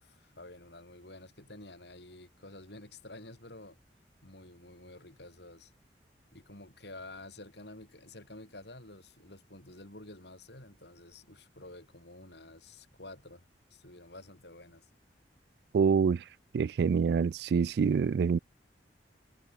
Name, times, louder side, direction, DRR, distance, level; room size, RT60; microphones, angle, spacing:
voice 1, 0.0-3.8 4.2-5.7 6.3-13.4 13.7-14.9, left 2 dB, 70° left, 5.8 m, -50 dB
voice 2, 15.7-16.2 16.5-18.4, right 6 dB, 60° right, 0.3 m, -26 dB
head